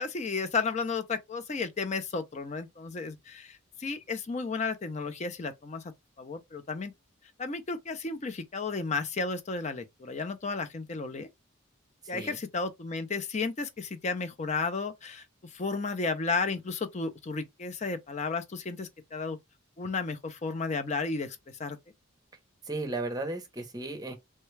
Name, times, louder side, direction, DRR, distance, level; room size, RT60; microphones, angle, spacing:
voice 1, 0.0-5.8 6.2-6.9 7.4-11.3 12.1-15.2 15.5-19.4 19.8-21.8, left 4 dB, 35° left, 0.5 m, -33 dB
voice 2, 12.0-12.4 22.6-24.2, right 2 dB, 20° right, 0.7 m, -35 dB
3.2 x 2.2 x 3.1 m
head